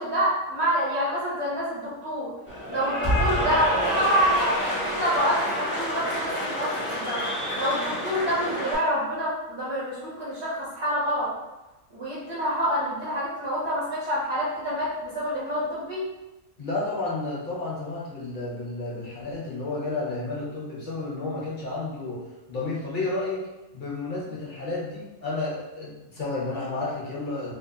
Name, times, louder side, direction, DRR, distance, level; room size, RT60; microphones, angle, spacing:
voice 1, 0.0-2.3 2.7-7.2 7.5-11.3 11.9-16.1, equal, 30° right, -8 dB, 0.6 m, -27 dB
Cheering / Applause, 2.5-8.8, equal, 15° left, 0.4 m, -28 dB
voice 2, 16.6-23.4 23.7-27.5, left 2 dB, 45° left, -6 dB, 0.9 m, -31 dB
2.9 x 2.1 x 2.6 m, 1.0 s
omnidirectional pair, 1.4 m